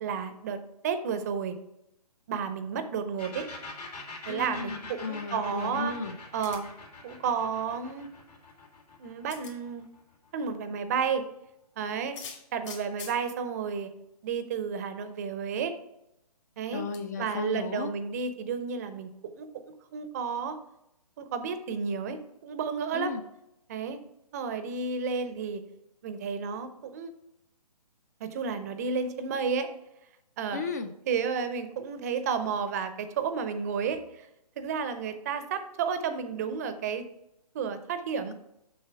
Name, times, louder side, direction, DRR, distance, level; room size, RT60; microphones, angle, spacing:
voice 1, 0.0-1.5 2.3-3.5 4.3-5.9 6.3-6.7 7.0-8.1 9.0-9.8 10.3-11.2 11.8-12.2 12.5-13.9 14.2-15.8 16.6-16.8 17.2-19.5 19.9-20.6 21.2-23.1 23.7-24.0 24.3-25.6 26.0-27.1 28.2-29.7 30.4-30.6 31.1-34.3 34.6-37.1 37.5-38.3, right 6 dB, 25° right, 10 dB, 0.6 m, -32 dB
sound 1, 3.2-10.7, left 3 dB, 85° left, 2.9 m, -44 dB
voice 2, 4.3-6.2 16.7-17.9 22.9-23.2 30.5-30.9, left 5 dB, 25° left, 9 dB, 0.4 m, -35 dB
sound 2, 6.4-6.8 8.5-8.6 9.3-9.6 12.0-13.2 14.2-14.3 14.7-14.8 16.9-17.0, left 7 dB, 45° left, 2.0 m, -43 dB
6.8 x 6.5 x 4.5 m, 0.84 s
hypercardioid pair, 150°, 20 cm